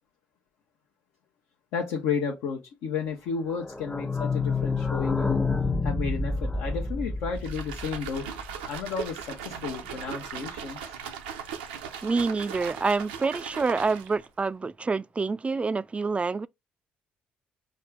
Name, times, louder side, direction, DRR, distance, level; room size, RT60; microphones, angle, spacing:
voice 1, 1.7-5.5 5.8-8.3 8.7-11.0, left 5 dB, 70° left, 0.8 m, -32 dB
sound 1, 3.5-9.1 9.4-9.5 9.7-9.8 10.0-10.1, left 4 dB, 15° left, 0.6 m, -29 dB
sound 2, 7.4-14.3, right 8 dB, 85° right, 0.6 m, -38 dB
voice 2, 12.0-16.5, right 4 dB, 25° right, 0.3 m, -27 dB
5.3 x 2.4 x 3.5 m
hypercardioid pair, 50°, 5 cm